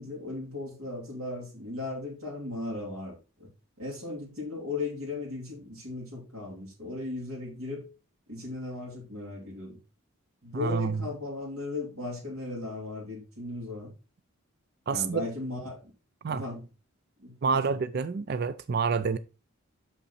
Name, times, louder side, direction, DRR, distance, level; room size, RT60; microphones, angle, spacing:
voice 1, 0.0-3.5 3.8-7.9 8.3-9.8 10.4-13.9 14.9-15.9 16.2-16.7 17.2-17.6, left 2 dB, 80° right, 2.8 m, -37 dB
voice 2, 10.5-11.0 14.9-15.2 16.2-16.4 17.4-19.2, right 5 dB, 50° right, 0.4 m, -28 dB
6.0 x 5.5 x 4.2 m
head